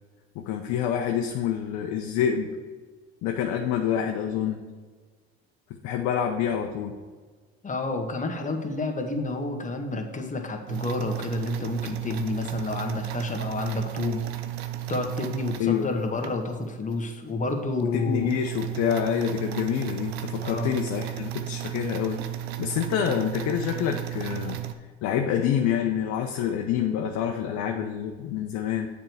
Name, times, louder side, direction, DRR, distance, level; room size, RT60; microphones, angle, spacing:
voice 1, 0.3-2.5 3.2-4.6 5.8-6.9 15.6-15.9 17.8-22.2 22.6-24.6 25.0-28.9, left 9 dB, 65° left, 3 dB, 0.8 m, -27 dB
voice 2, 7.6-14.2 14.9-18.3 20.4-20.7, left 2 dB, 25° left, 3 dB, 1.6 m, -29 dB
sound 1, 10.7-16.3 16.9-17.0 17.4-17.5 17.8-24.7, right 12 dB, 90° right, 0.7 m, -34 dB
7.5 x 4.7 x 6.9 m, 1.5 s
hypercardioid pair, 75°, 31 cm